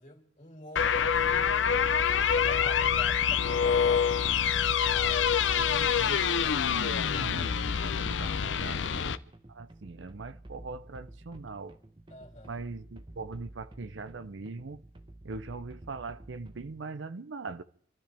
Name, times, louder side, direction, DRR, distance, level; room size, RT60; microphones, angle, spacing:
voice 1, 0.0-1.9 2.3-4.1 12.1-12.6, left 1 dB, 40° left, 3.1 m, -47 dB
sound 1, 0.8-9.2, left 7 dB, 75° left, 0.6 m, -26 dB
sound 2, 1.0-16.9, right 1 dB, 25° right, 1.0 m, -50 dB
voice 2, 5.5-9.2 9.5-11.8 12.5-14.8 15.2-17.6, right 3 dB, 80° right, 0.7 m, -41 dB
29.0 x 12.5 x 3.4 m
head